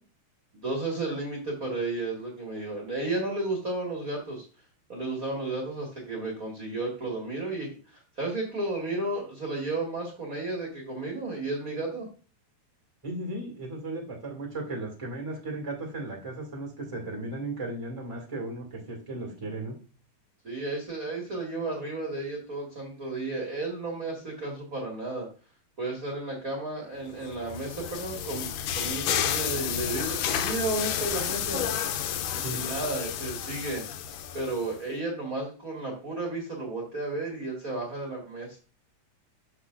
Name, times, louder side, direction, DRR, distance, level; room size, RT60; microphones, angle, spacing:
voice 1, 0.5-4.4 4.9-12.1 20.4-25.3 25.8-31.7 32.5-33.9 34.3-38.6, right 2 dB, 85° right, -1 dB, 0.7 m, -33 dB
voice 2, 13.0-19.7 32.4-32.6, right 2 dB, 20° right, 0 dB, 0.8 m, -36 dB
sound 1, 27.2-34.7, left 9 dB, 85° left, 2.7 m, -31 dB
8.4 x 6.3 x 2.4 m, 0.37 s
omnidirectional pair, 4.5 m